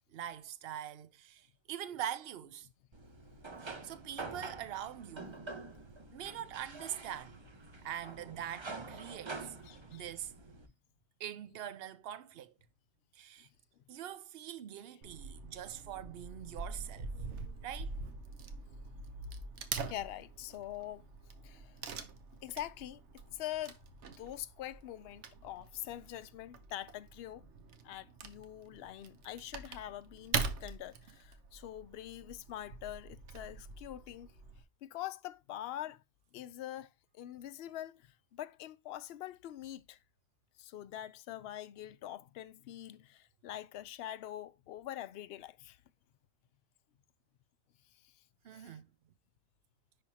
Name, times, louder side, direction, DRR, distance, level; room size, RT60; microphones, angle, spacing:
voice 1, 0.1-2.7 3.6-5.4 6.1-7.4 7.8-9.6 9.9-10.3 11.2-12.5 13.1-13.5 13.9-17.3 17.6-17.9 48.4-48.9, right 10 dB, 65° right, 0.8 m, -43 dB
sound 1, 2.9-10.7, right 3 dB, 30° right, 0.7 m, -47 dB
voice 2, 9.4-10.0 19.8-21.1 21.4-21.9 22.3-27.5 27.8-34.3 34.8-36.0 36.3-40.0 40.6-45.8 48.0-48.1 48.5-48.8, left 12 dB, 70° left, 0.8 m, -44 dB
Wood / Tearing, 15.0-34.6, right 4 dB, 80° right, 1.2 m, -44 dB
10.5 x 3.4 x 2.8 m
omnidirectional pair, 1.2 m